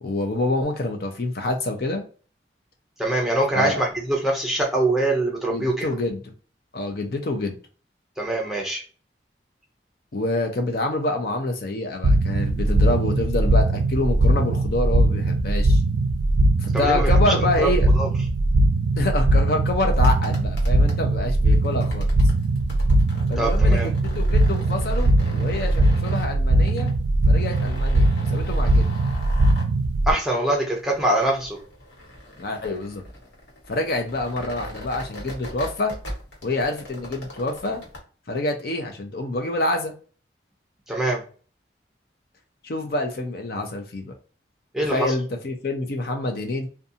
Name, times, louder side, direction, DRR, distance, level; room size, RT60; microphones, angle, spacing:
voice 1, 0.0-2.0 3.6-3.8 5.5-6.2 6.7-7.6 10.1-15.8 16.6-17.9 19.0-22.1 23.3-26.9 27.3-28.9 32.4-33.0 33.7-35.9 36.4-37.8 38.3-39.9 42.6-44.1 44.9-46.7, left 2 dB, 55° left, 4 dB, 0.5 m, -27 dB
voice 2, 3.0-5.9 8.2-8.8 16.7-17.7 17.9-18.1 23.4-23.9 30.1-31.6 40.9-41.2 44.7-45.1, right 1 dB, ahead, -1 dB, 0.6 m, -23 dB
sound 1, 12.0-30.1, right 1 dB, 85° right, 0.4 m, -20 dB
sound 2, 19.9-38.0, left 1 dB, 85° left, 1.2 m, -40 dB
2.5 x 2.3 x 2.6 m, 0.39 s
head